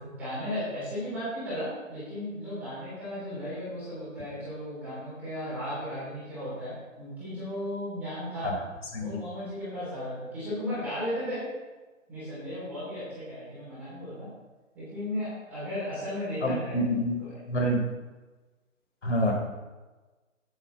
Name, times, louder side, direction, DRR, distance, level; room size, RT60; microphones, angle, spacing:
voice 1, 0.0-8.5 9.0-11.5 12.1-14.3 14.7-16.8 17.2-17.3, left 1 dB, 5° right, -12 dB, 3.4 m, -35 dB
voice 2, 16.4-17.8 19.0-19.4, equal, 60° left, 0 dB, 4.0 m, -27 dB
10.5 x 10.5 x 4.1 m, 1.2 s
figure-of-eight pair, 170°, 40 cm